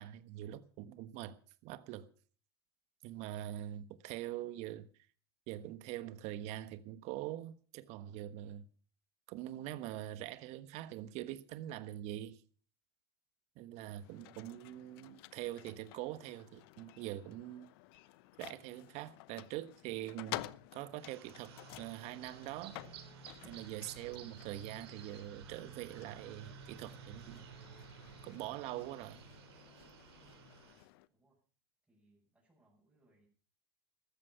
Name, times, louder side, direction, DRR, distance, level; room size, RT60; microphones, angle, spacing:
voice 1, 0.0-2.1 3.0-4.9 5.5-8.7 9.3-12.4 13.6-17.7 18.4-22.8 23.4-27.5 28.2-29.2, right 13 dB, 55° right, 1.3 m, -44 dB
sound 1, 13.9-31.1, left 18 dB, 70° left, 0.9 m, -52 dB
sound 2, 21.0-30.9, right 7 dB, 80° right, 3.7 m, -53 dB
voice 2, 31.9-33.3, right 2 dB, 10° right, 7.8 m, -72 dB
14.5 x 14.0 x 5.7 m
hypercardioid pair, 100°, 13 cm